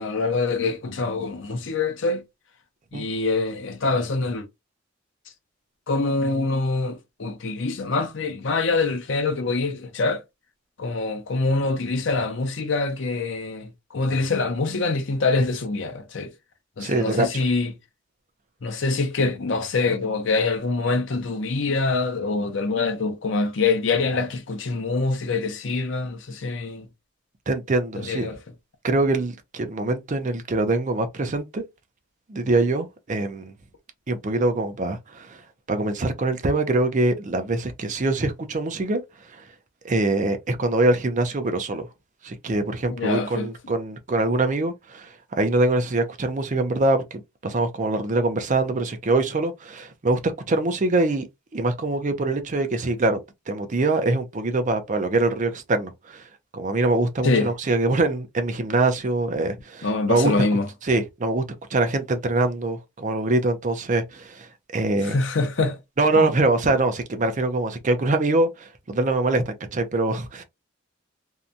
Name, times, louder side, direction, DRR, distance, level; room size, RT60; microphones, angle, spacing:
voice 1, 0.0-2.2 2.9-4.4 5.9-10.2 10.8-16.3 16.8-17.7 18.6-26.9 28.0-28.4 42.9-43.5 57.2-57.5 59.8-60.7 65.1-65.8 66.1-66.3 66.6-66.7, left 3 dB, 65° left, 0.6 m, -25 dB
voice 2, 16.8-17.4 27.5-28.3 28.8-31.6 32.3-33.5 34.1-35.4 35.7-39.0 39.3-39.4 39.8-41.9 42.2-45.1 45.4-51.3 51.5-53.2 53.5-56.3 56.5-60.3 60.8-61.4 61.7-65.1 66.0-70.4, right 2 dB, 40° right, 0.5 m, -24 dB
2.7 x 2.2 x 2.5 m
head